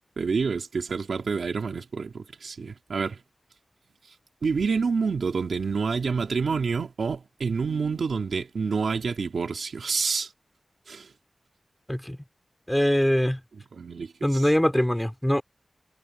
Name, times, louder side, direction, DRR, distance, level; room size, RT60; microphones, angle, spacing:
voice 1, 0.2-3.2 4.4-10.3 10.9-11.1 13.7-14.5, right 5 dB, 90° right, 3.6 m, -28 dB
voice 2, 12.7-13.4 14.2-15.4, equal, 5° left, 3.5 m, -22 dB
wide cardioid pair, 95°, 0 cm